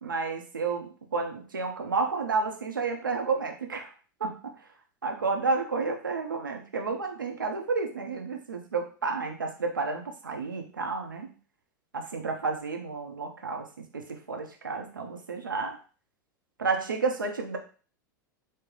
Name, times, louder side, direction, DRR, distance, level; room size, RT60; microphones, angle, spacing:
voice 1, 0.0-3.9 4.2-4.7 5.0-11.4 11.9-15.8 16.6-17.6, right 4 dB, 90° right, 3 dB, 0.7 m, -31 dB
3.3 x 2.2 x 3.8 m, 0.37 s
hypercardioid pair, 90°, 11 cm